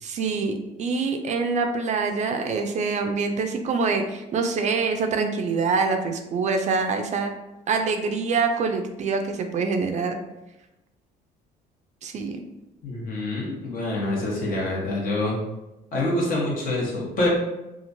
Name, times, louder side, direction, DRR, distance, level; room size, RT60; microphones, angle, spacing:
voice 1, 0.0-0.5 0.8-7.3 7.7-10.2 12.0-12.4, right 4 dB, 45° right, 5 dB, 0.4 m, -25 dB
voice 2, 12.8-15.4 15.9-17.3, left 2 dB, 55° left, -3 dB, 1.1 m, -26 dB
2.9 x 2.4 x 2.6 m, 0.97 s
cardioid pair, 110°, 17 cm